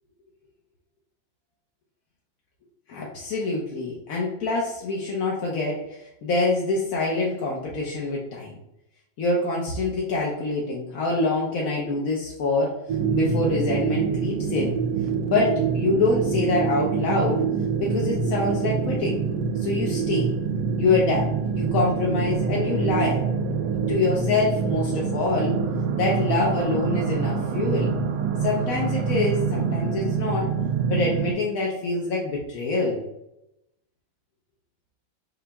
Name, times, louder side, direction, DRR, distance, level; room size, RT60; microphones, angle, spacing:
voice 1, 2.9-8.6 9.2-12.7 13.1-14.8 15.3-17.4 17.8-19.2 19.6-20.3 20.8-23.2 23.9-25.6 26.0-27.9 28.4-30.5 30.9-33.0, left 3 dB, 60° left, -3 dB, 1.0 m, -25 dB
sound 1, 12.9-31.3, right 6 dB, 70° right, 1.0 m, -26 dB
5.8 x 2.2 x 3.4 m, 0.86 s
omnidirectional pair, 2.1 m